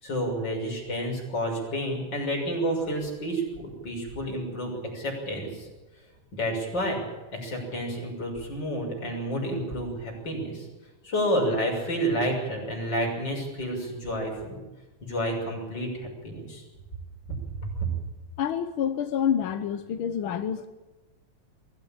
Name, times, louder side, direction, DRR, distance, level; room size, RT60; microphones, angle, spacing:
voice 1, 0.0-5.7 6.4-7.0 7.3-10.7 11.0-14.6 15.0-16.6 17.8-17.9, equal, 35° left, 0 dB, 7.1 m, -30 dB
voice 2, 18.4-20.7, left 8 dB, 65° left, 8 dB, 1.3 m, -27 dB
23.0 x 15.5 x 8.8 m, 1.1 s
omnidirectional pair, 3.4 m